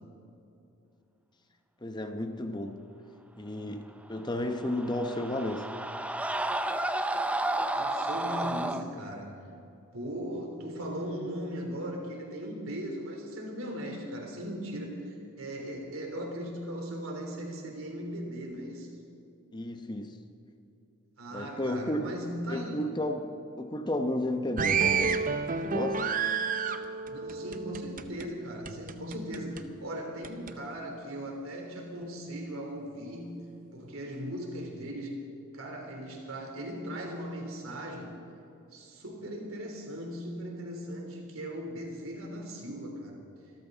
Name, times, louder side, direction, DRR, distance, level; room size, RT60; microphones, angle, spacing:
voice 1, 1.8-2.8 3.4-5.7 19.5-20.2 21.3-22.1 22.5-23.3 23.6-25.3 25.6-26.0, left 1 dB, 20° left, 6 dB, 0.9 m, -33 dB
Screaming, 4.4-8.8, right 1 dB, 5° right, 0.5 m, -31 dB
voice 2, 7.7-9.3 9.9-18.9 21.2-22.8 27.0-33.4 33.7-35.2 35.5-38.1 38.7-43.2, equal, 75° right, 1 dB, 3.5 m, -38 dB
sound 1, 24.6-28.3 28.6-29.6 30.2-30.5, right 5 dB, 40° right, 0.7 m, -30 dB
25.5 x 14.0 x 4.0 m, 2.8 s
head